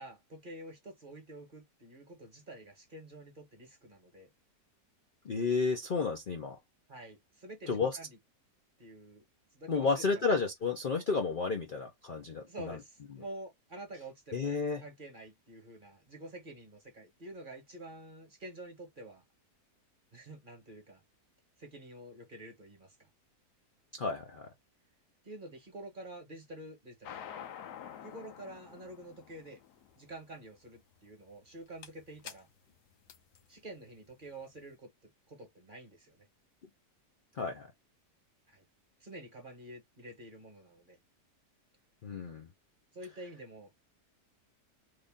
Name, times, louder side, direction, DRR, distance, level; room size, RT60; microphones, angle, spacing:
voice 1, 0.0-4.3 6.9-8.2 8.8-9.2 9.5-10.4 12.5-19.2 20.1-21.0 21.6-23.0 25.2-27.1 28.0-29.6 30.0-32.5 33.5-36.3 38.5-38.6 39.0-41.0 42.9-43.7, right 1 dB, 35° right, 1.2 m, -48 dB
voice 2, 5.2-6.6 7.7-8.0 9.7-12.8 14.3-14.8 24.0-24.5 37.4-37.7 42.0-42.5, left 4 dB, 55° left, 0.5 m, -32 dB
sound 1, 27.0-34.6, left 9 dB, 75° left, 1.3 m, -49 dB
3.3 x 2.6 x 3.5 m
omnidirectional pair, 1.8 m